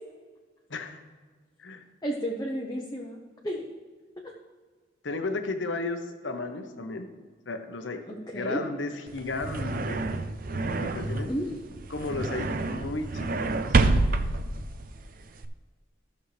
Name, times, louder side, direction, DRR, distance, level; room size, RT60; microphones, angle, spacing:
voice 1, 0.7-1.0 1.6-1.8 5.0-7.1 7.5-8.0 8.3-10.1 10.5-11.3 11.9-13.5, left 3 dB, 70° left, 6 dB, 0.9 m, -34 dB
voice 2, 2.0-3.7 4.2-4.3 8.1-8.6 11.3-11.6, equal, 20° left, -1 dB, 0.8 m, -32 dB
sound 1, 9.1-15.5, right 2 dB, 45° right, 0.5 m, -28 dB
14.5 x 6.4 x 3.3 m, 1.4 s
head